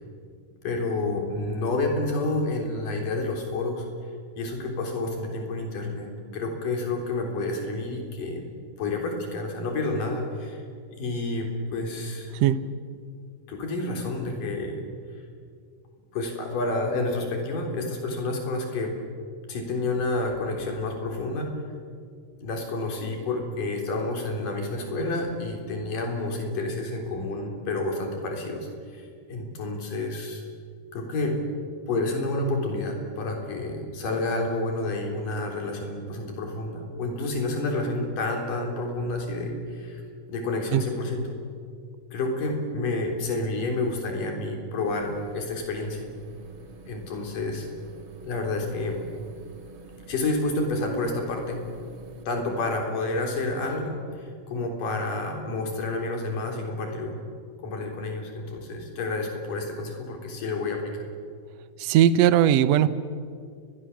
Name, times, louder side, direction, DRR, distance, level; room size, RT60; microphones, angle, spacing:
voice 1, 0.6-3.9 4.4-8.5 8.8-10.6 10.9-12.3 13.5-14.8 16.1-18.9 19.5-21.5 22.4-30.4 30.9-31.4 31.9-40.0 40.3-41.2 42.1-46.1 46.9-47.7 48.2-49.0 50.1-51.6 52.3-57.2 57.6-61.1, left 2 dB, 65° left, 2 dB, 5.2 m, -29 dB
voice 2, 12.3-12.7 40.7-40.8 61.8-62.9, right 11 dB, 75° right, 14 dB, 1.5 m, -19 dB
sound 1, 44.9-52.2, right 4 dB, 40° right, 2.4 m, -48 dB
30.0 x 22.5 x 7.3 m, 2.2 s
omnidirectional pair, 4.1 m